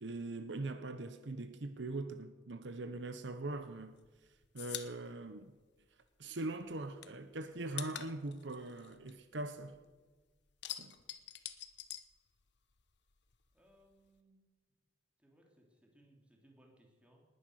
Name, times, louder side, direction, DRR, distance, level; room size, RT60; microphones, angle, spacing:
voice 1, 0.0-3.9 4.5-5.5 6.2-9.8 10.8-10.9, right 2 dB, 70° right, 0.9 m, -41 dB
sound 1, 3.5-6.3 6.6-9.9 10.2-12.8 13.1-14.2, left 12 dB, 65° left, 1.0 m, -47 dB
voice 2, 13.5-14.5 15.2-17.3, right 1 dB, 5° right, 3.2 m, -66 dB
19.5 x 9.9 x 6.5 m
head